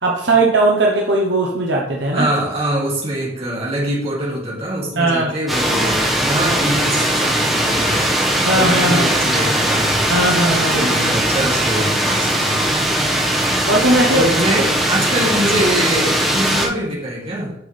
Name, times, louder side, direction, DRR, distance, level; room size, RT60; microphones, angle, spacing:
voice 1, 0.0-2.3 5.0-5.3 8.4-9.1 10.1-10.9 13.7-14.2, right 2 dB, 60° right, -2 dB, 1.2 m, -17 dB
voice 2, 2.1-8.1 8.5-10.1 10.7-12.7 14.1-17.5, right 1 dB, 30° right, -5 dB, 2.9 m, -23 dB
sound 1, 5.5-16.7, right 1 dB, ahead, 1.7 m, -19 dB
10.0 x 6.2 x 3.5 m, 0.78 s
head